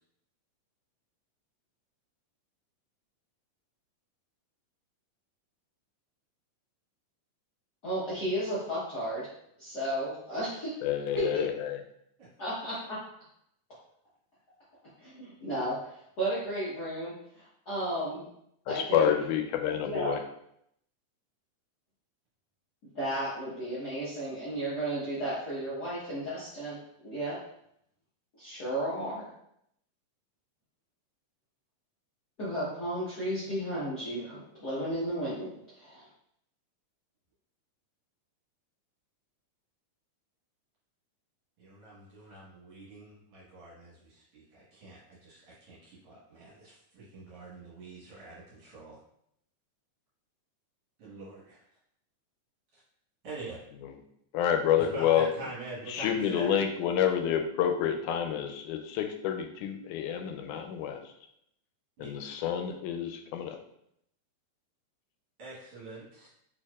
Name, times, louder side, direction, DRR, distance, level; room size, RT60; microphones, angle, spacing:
voice 1, 7.8-9.3 9.6-10.7 11.1-11.5 12.4-12.7 15.0-18.2 18.7-19.1 19.7-20.1 22.9-26.8 27.0-27.4 28.4-29.3 32.4-36.1, right 1 dB, 55° left, -10 dB, 1.1 m, -33 dB
voice 2, 10.8-11.8 18.7-20.2 54.3-55.3 55.9-61.0 62.0-63.6, left 9 dB, 90° left, 6 dB, 2.1 m, -28 dB
voice 3, 41.6-49.0 51.0-51.6 53.2-53.6 54.8-56.5 62.0-62.1 65.4-66.3, right 2 dB, 55° right, -7 dB, 2.0 m, -44 dB
4.6 x 4.5 x 2.4 m, 0.73 s
omnidirectional pair, 3.5 m